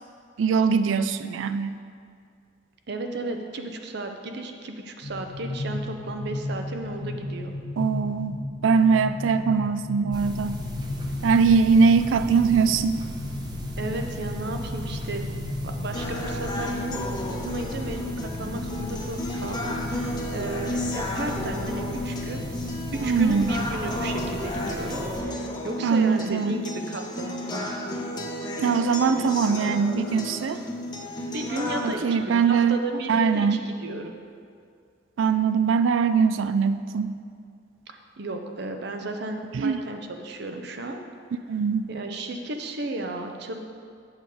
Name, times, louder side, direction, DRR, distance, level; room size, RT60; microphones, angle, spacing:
voice 1, 0.4-1.8 7.8-10.6 11.2-13.0 23.0-23.6 25.8-26.5 28.6-30.6 31.8-32.8 33.1-33.6 35.2-37.2 39.5-39.8 41.5-41.9, right 5 dB, 90° right, 11 dB, 0.4 m, -22 dB
voice 2, 2.9-7.5 13.8-15.3 15.6-22.5 22.9-27.8 31.2-34.2 37.9-41.0 41.9-43.6, right 2 dB, 60° right, 5 dB, 0.7 m, -34 dB
sound 1, 5.0-16.0, left 1 dB, 60° left, 0.8 m, -35 dB
sound 2, 10.1-25.2, left 1 dB, 20° right, 0.8 m, -36 dB
sound 3, 15.9-31.9, left 1 dB, 25° left, 0.9 m, -32 dB
8.1 x 6.9 x 4.9 m, 2.2 s
head